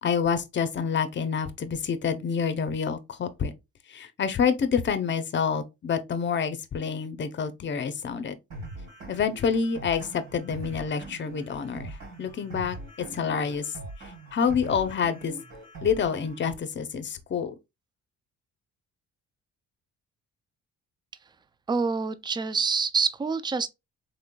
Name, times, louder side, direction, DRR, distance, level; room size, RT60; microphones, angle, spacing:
voice 1, 0.0-3.5 3.9-8.3 9.1-13.7 14.0-15.3 15.8-17.5, left 6 dB, 40° left, 0.6 m, -28 dB
sound 1, 8.5-16.5, right 2 dB, 80° right, 2.4 m, -42 dB
voice 2, 21.7-23.7, right 5 dB, 15° right, 0.3 m, -26 dB
3.7 x 3.2 x 2.2 m
cardioid pair, 90°, 30 cm